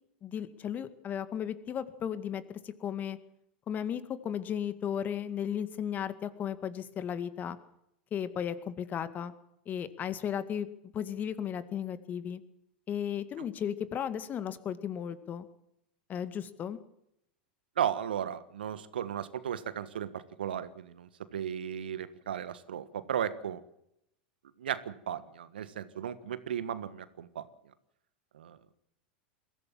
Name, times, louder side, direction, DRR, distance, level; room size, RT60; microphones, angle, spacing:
voice 1, 0.2-3.2 3.7-7.6 8.1-9.3 9.7-10.7 10.9-12.4 12.9-15.5 16.1-16.8, left 9 dB, 30° left, 13 dB, 2.0 m, -35 dB
voice 2, 17.8-23.6 24.6-27.5 28.3-28.6, right 9 dB, 75° right, 14 dB, 1.5 m, -35 dB
22.5 x 16.0 x 7.4 m, 0.78 s
hypercardioid pair, 90°, 5 cm